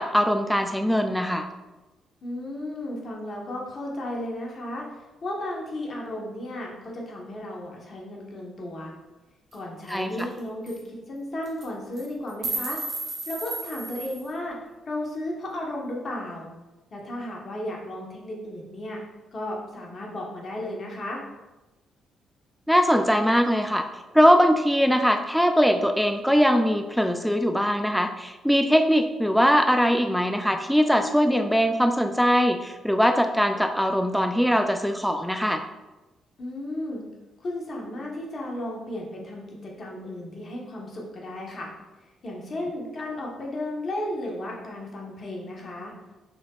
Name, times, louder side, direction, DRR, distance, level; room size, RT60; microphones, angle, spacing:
voice 1, 0.0-1.5 9.9-10.3 22.7-23.9 24.1-35.6, equal, ahead, 6 dB, 0.4 m, -21 dB
voice 2, 2.2-4.9 5.2-8.9 9.5-12.8 13.3-14.6 14.9-16.5 16.9-19.0 19.3-21.2 36.4-37.0 37.4-41.7 42.2-45.9, left 1 dB, 50° left, -1 dB, 1.2 m, -34 dB
sound 1, 9.5-9.6 9.9-10.0 10.2-10.4 10.7-10.8 11.4-11.7 12.0-14.3, right 3 dB, 55° right, 1.3 m, -33 dB
5.8 x 3.6 x 2.4 m, 1.1 s
hypercardioid pair, 45°, 0 cm